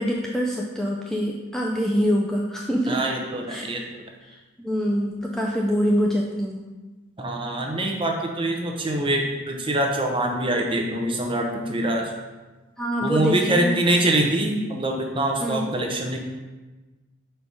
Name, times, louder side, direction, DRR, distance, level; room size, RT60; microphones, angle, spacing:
voice 1, 0.0-3.0 3.5-3.7 4.2-6.6 12.8-13.9 15.4-15.7, equal, ahead, -2 dB, 0.4 m, -25 dB
voice 2, 2.9-4.0 7.2-12.1 13.0-16.2, right 1 dB, 25° right, 2 dB, 0.7 m, -24 dB
4.9 x 4.4 x 5.5 m, 1.2 s
head